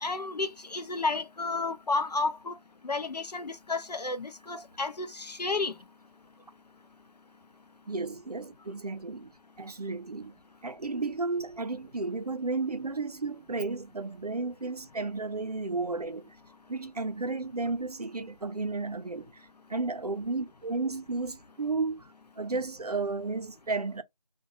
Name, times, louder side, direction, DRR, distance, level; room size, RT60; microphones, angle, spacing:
voice 1, 0.0-2.5 2.8-5.7, left 3 dB, 75° left, 0.5 m, -31 dB
voice 2, 7.9-9.3 9.6-10.4 10.6-16.3 16.7-19.3 19.7-22.1 22.4-24.0, right 3 dB, 65° right, 0.5 m, -33 dB
2.7 x 2.2 x 2.7 m
figure-of-eight pair, 170°, 21 cm